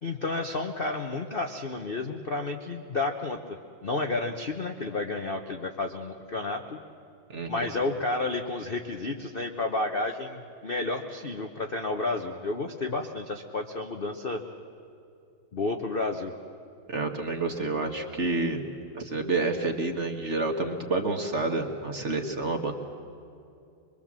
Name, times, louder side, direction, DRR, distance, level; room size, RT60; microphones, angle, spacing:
voice 1, 0.0-6.8 7.5-14.4 15.5-16.3, left 3 dB, 40° left, 4 dB, 0.8 m, -31 dB
voice 2, 7.3-7.7 16.9-18.7 18.9-22.7, right 3 dB, 40° right, 4 dB, 1.6 m, -29 dB
23.5 x 23.0 x 7.4 m, 2.6 s
omnidirectional pair, 2.2 m